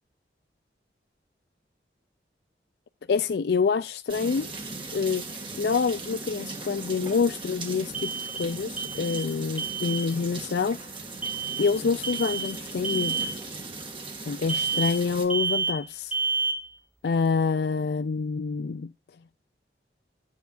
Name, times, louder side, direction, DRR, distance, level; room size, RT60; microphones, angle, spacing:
voice 1, 3.1-4.5 4.9-10.9 11.6-13.3 14.3-16.1 17.0-18.9, left 5 dB, 70° left, 0.4 m, -27 dB
sound 1, 4.1-15.3, right 3 dB, 30° right, 2.0 m, -38 dB
sound 2, 4.7-4.8 7.9-8.5 8.8-9.3 9.6-10.1 11.2-11.7 12.0-12.5 12.8-13.3 14.5-15.0 15.3-15.9 16.1-16.7, right 5 dB, 10° right, 0.6 m, -29 dB
11.5 x 9.3 x 2.5 m
head